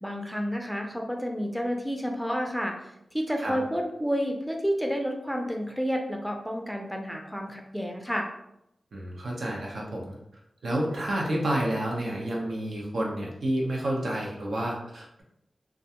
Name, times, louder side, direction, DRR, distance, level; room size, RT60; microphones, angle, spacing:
voice 1, 0.0-8.3, equal, ahead, 2 dB, 0.4 m, -30 dB
voice 2, 8.9-10.2 10.6-15.2, right 1 dB, 80° right, -2 dB, 0.7 m, -29 dB
2.4 x 2.2 x 2.8 m, 0.80 s
wide cardioid pair, 65°, 0 cm